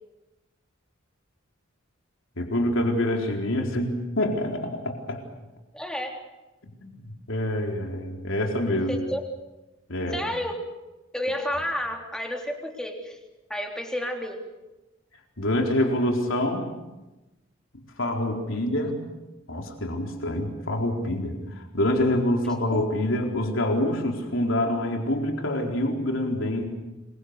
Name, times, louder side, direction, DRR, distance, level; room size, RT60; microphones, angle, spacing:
voice 1, 2.4-5.2 6.8-9.0 9.9-10.2 15.4-16.7 17.7-19.0 19.5-26.6, left 1 dB, 70° left, 2 dB, 4.3 m, -26 dB
voice 2, 5.7-6.2 8.9-9.2 10.1-10.6 11.1-13.2 13.5-14.4 22.7-22.9, left 1 dB, 5° left, 2 dB, 3.5 m, -31 dB
26.5 x 23.5 x 6.8 m, 1.0 s
head